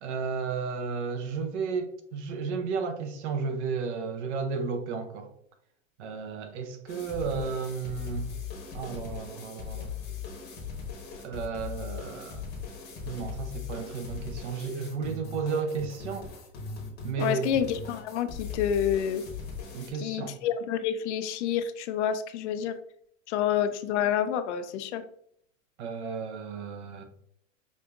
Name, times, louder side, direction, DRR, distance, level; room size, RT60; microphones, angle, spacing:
voice 1, 0.0-5.3 6.0-8.3 8.7-9.9 11.2-12.5 13.1-16.3 17.0-17.6 19.7-20.4 25.8-27.0, right 5 dB, 60° right, 0.7 m, -33 dB
sound 1, 6.9-19.9, left 6 dB, 25° left, 0.9 m, -39 dB
voice 2, 17.2-19.2 20.0-22.8 23.3-25.0, left 9 dB, 60° left, 0.5 m, -28 dB
5.1 x 2.6 x 2.3 m
supercardioid pair, 150°, 39 cm